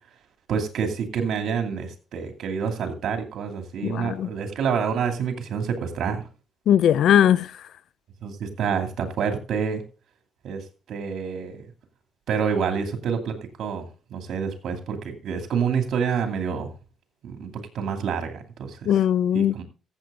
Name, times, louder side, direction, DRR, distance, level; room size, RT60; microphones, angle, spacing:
voice 1, 0.5-6.2 8.2-9.8 10.4-10.6 10.9-11.6 12.3-13.9 14.1-16.7 17.2-18.8 19.3-19.6, right 6 dB, 70° right, 2.6 m, -27 dB
voice 2, 3.8-4.3 6.7-7.5 18.9-19.5, left 10 dB, 75° left, 0.5 m, -19 dB
14.5 x 7.9 x 3.7 m
cardioid pair, 90°, 0 cm